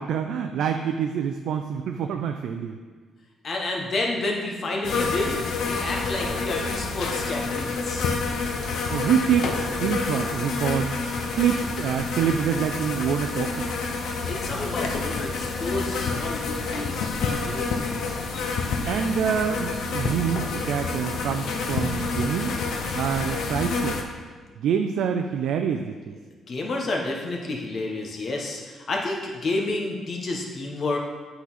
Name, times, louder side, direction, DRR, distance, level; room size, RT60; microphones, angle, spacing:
voice 1, 0.0-2.8 8.9-10.9 11.3-13.7 18.9-22.6 22.9-24.0 24.6-26.2, right 8 dB, 75° right, 5 dB, 0.3 m, -26 dB
voice 2, 3.4-5.4 5.6-8.1 14.2-17.7 26.5-31.0, left 2 dB, 50° left, 0 dB, 1.2 m, -30 dB
sound 1, 4.8-24.0, left 4 dB, 75° left, 0.7 m, -28 dB
8.3 x 4.0 x 4.1 m, 1.5 s
cardioid pair, 90°, 0 cm